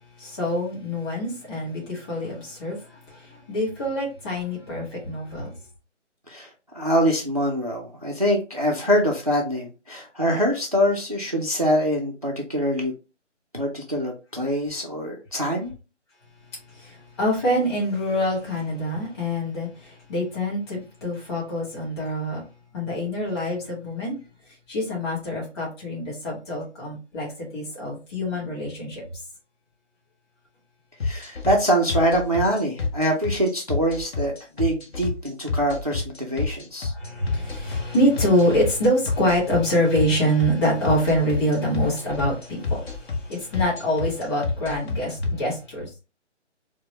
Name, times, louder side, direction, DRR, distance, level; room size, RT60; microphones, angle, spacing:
voice 1, 0.2-5.5 16.8-22.4 22.7-24.2 24.7-29.0 36.9-45.9, equal, 20° left, 1.6 m, -25 dB
voice 2, 6.7-12.9 13.5-15.7 31.0-36.9, equal, 35° right, 0.4 m, -24 dB
sound 1, 31.0-45.3, left 4 dB, 55° left, 1.0 m, -27 dB
4.6 x 2.0 x 3.0 m
figure-of-eight pair, 165°, 36 cm